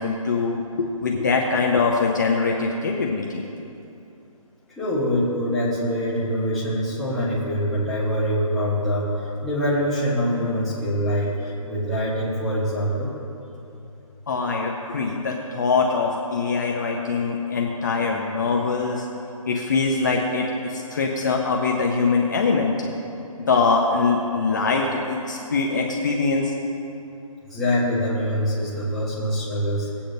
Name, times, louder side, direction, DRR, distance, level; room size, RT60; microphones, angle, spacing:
voice 1, 0.0-3.4 14.3-19.0 19.5-22.9 23.5-26.5, left 4 dB, 30° left, 0 dB, 0.6 m, -23 dB
voice 2, 4.8-13.1 27.5-29.9, equal, ahead, -11 dB, 1.1 m, -24 dB
19.0 x 8.5 x 2.6 m, 2.8 s
hypercardioid pair, 175°, 18 cm